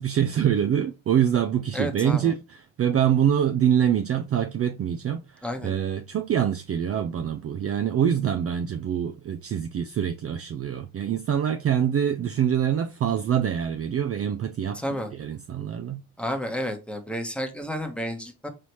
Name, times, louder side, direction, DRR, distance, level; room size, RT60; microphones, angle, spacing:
voice 1, 0.0-16.0, right 9 dB, 35° right, 0.4 m, -25 dB
voice 2, 1.7-2.4 5.4-5.7 14.7-15.1 16.2-18.5, equal, 5° left, 1.0 m, -31 dB
4.0 x 3.3 x 3.0 m
hypercardioid pair, 60°, 43 cm